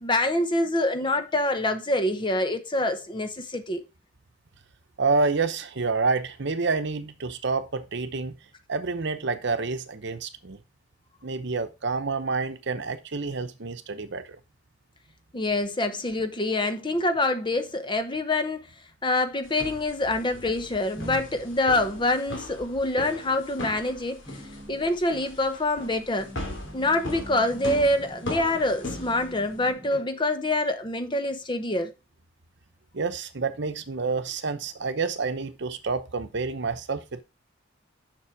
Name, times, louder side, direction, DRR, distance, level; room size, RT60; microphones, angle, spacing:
voice 1, 0.0-3.8 15.3-18.6 19.0-24.2 24.7-26.3 26.7-31.9, left 2 dB, 25° left, 0.9 m, -26 dB
voice 2, 5.0-8.4 8.7-10.6 11.2-14.4 32.9-37.2, right 4 dB, 60° right, 0.9 m, -28 dB
sound 1, 19.4-29.7, left 2 dB, 65° left, 2.4 m, -39 dB
sound 2, 20.6-21.8 22.8-23.1 23.6-30.0, left 1 dB, 10° right, 1.0 m, -45 dB
7.2 x 6.1 x 4.7 m
head